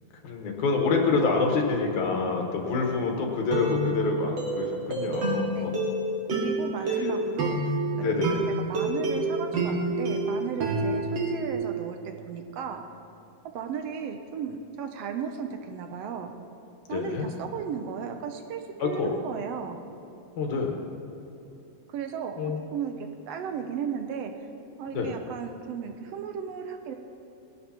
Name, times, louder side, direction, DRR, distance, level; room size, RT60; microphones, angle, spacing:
voice 1, 0.2-5.7 7.0-7.1 8.0-8.4 16.9-17.3 18.8-19.1 20.4-20.8 22.4-22.6 25.0-25.1, left 4 dB, 75° left, 1 dB, 2.6 m, -27 dB
sound 1, 2.6-2.9 3.5-11.5, right 2 dB, 45° right, 2.3 m, -28 dB
voice 2, 6.3-7.8 8.7-12.8 13.5-16.3 16.9-19.8 21.9-24.3 24.8-26.9, right 7 dB, 75° right, 5 dB, 1.5 m, -35 dB
19.0 x 11.0 x 2.9 m, 2.7 s
omnidirectional pair, 3.4 m